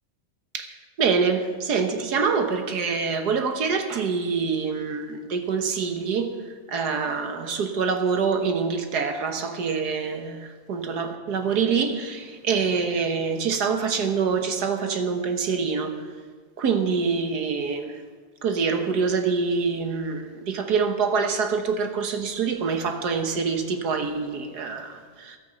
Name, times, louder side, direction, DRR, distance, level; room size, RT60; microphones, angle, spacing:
voice 1, 1.0-6.3 6.7-10.4 10.7-15.9 16.6-17.9 18.4-25.4, right 5 dB, 65° right, 6 dB, 1.7 m, -25 dB
14.5 x 12.0 x 5.2 m, 1.5 s
omnidirectional pair, 1.9 m